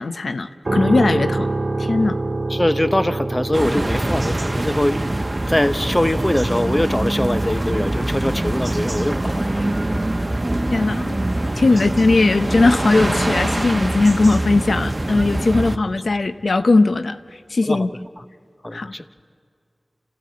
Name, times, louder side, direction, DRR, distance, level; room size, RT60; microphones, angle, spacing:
voice 1, 0.0-1.5 1.8-2.2 10.7-11.2 11.6-17.2 17.5-17.9 18.7-18.9, left 3 dB, 90° left, 11 dB, 0.8 m, -18 dB
sound 1, 0.7-14.7, right 2 dB, 55° right, 1.5 m, -29 dB
voice 2, 2.5-5.0 5.5-9.8 11.7-11.8 15.7-15.8 17.6-17.9 18.2-18.3 18.6-19.1, left 1 dB, 20° left, 13 dB, 0.9 m, -22 dB
sound 2, 3.5-15.8, right 1 dB, 30° right, 1.2 m, -24 dB
27.5 x 15.5 x 8.6 m, 2.2 s
wide cardioid pair, 45°, 0 cm